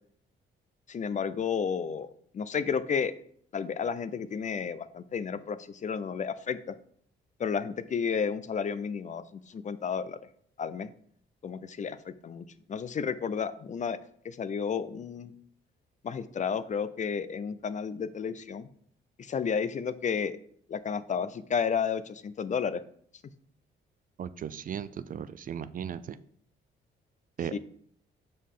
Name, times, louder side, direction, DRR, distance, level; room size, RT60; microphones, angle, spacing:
voice 1, 0.9-3.1 3.5-6.8 7.4-10.2 10.6-10.9 11.4-14.0 14.2-15.3 16.0-18.7 19.2-20.4 20.7-22.8 27.5-27.6, left 6 dB, 40° left, 14 dB, 0.5 m, -32 dB
voice 2, 24.2-26.2 27.4-27.6, right 8 dB, 45° right, 14 dB, 0.4 m, -36 dB
6.5 x 5.2 x 3.8 m, 0.62 s
cardioid pair, 90°, 20 cm